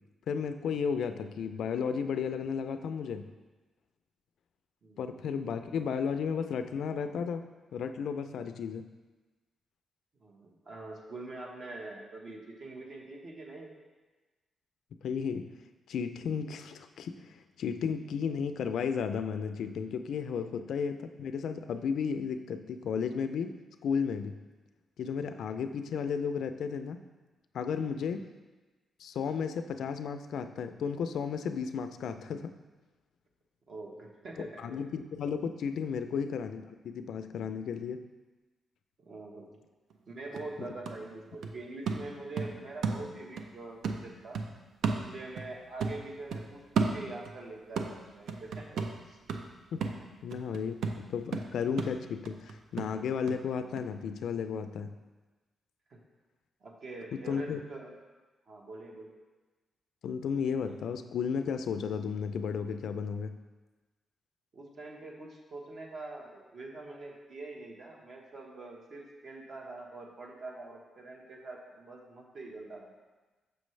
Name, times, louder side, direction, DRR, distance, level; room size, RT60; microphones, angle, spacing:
voice 1, 0.3-3.2 5.0-7.4 7.7-8.9 15.0-15.5 15.9-23.6 23.8-24.4 25.0-27.0 27.5-28.3 29.0-32.6 34.4-38.0 40.6-40.7 49.7-49.8 50.2-54.9 57.1-57.6 60.0-63.3, left 6 dB, 80° left, 9 dB, 0.4 m, -33 dB
voice 2, 4.8-5.2 10.2-13.7 20.3-20.4 27.9-28.2 33.7-34.6 35.9-36.0 39.0-39.5 40.1-44.4 44.9-48.8 49.1-49.2 55.9-56.0 56.6-57.9 58.5-59.1 64.5-72.9, right 2 dB, 50° right, 0 dB, 1.1 m, -44 dB
sound 1, 39.9-40.0 40.4-43.5 43.8-45.5 45.8-47.4 47.8-53.4 53.8-53.9, right 5 dB, 85° right, 0.5 m, -35 dB
6.6 x 6.2 x 3.2 m, 1.2 s
cardioid pair, 125°, 0 cm